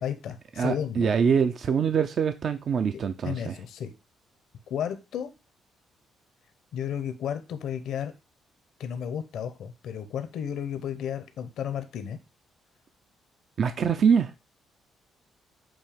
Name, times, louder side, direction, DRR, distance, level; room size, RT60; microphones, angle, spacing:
voice 1, 0.0-1.1 3.2-3.9 4.7-5.3 6.7-8.1 8.8-12.2, left 9 dB, 75° left, 0.8 m, -33 dB
voice 2, 0.6-3.6 13.6-14.3, right 6 dB, 55° right, 0.5 m, -24 dB
7.4 x 2.8 x 5.1 m
cardioid pair, 90°, 0 cm